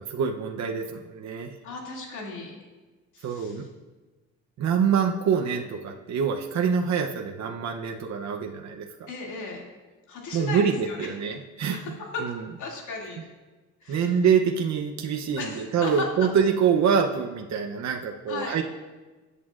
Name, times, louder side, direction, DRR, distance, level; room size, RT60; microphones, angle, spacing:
voice 1, 0.0-1.6 3.2-3.7 4.6-9.1 10.3-12.0 12.2-12.4 13.9-18.6, right 6 dB, 65° right, 2 dB, 0.8 m, -25 dB
voice 2, 1.6-2.6 3.1-3.7 9.1-9.6 10.1-11.1 11.7-12.3 12.6-13.2 13.8-14.2 15.3-16.3 18.3-18.6, left 3 dB, 75° left, -2 dB, 2.6 m, -35 dB
18.0 x 8.4 x 2.5 m, 1.3 s
cardioid pair, 90°, 30 cm